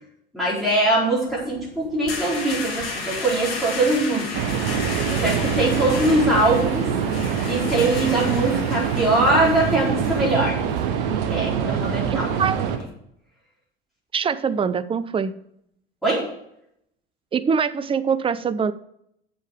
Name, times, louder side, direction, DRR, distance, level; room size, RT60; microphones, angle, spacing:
voice 1, 0.3-4.3 4.7-6.9 7.5-10.6 11.3-12.3 16.0-16.3, right 2 dB, ahead, -8 dB, 4.7 m, -22 dB
sound 1, 1.3-12.9, left 4 dB, 75° left, 1.7 m, -34 dB
sound 2, 4.3-12.8, right 7 dB, 65° right, 1.1 m, -25 dB
voice 2, 12.1-12.6 14.1-15.3 17.3-18.7, right 6 dB, 20° right, 14 dB, 0.6 m, -23 dB
7.4 x 7.0 x 6.5 m, 0.74 s
figure-of-eight pair, 70°, 30 cm